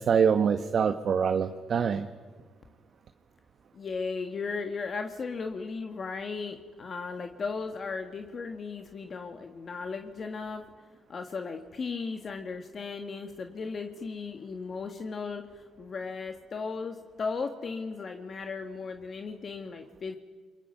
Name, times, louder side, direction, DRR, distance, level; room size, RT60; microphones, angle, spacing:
voice 1, 0.1-2.1, right 7 dB, 55° right, 8 dB, 1.1 m, -24 dB
voice 2, 3.7-10.6 11.1-20.2, left 4 dB, 45° left, 5 dB, 1.6 m, -36 dB
29.5 x 22.5 x 5.6 m, 1.5 s
cardioid pair, 90°, 0 cm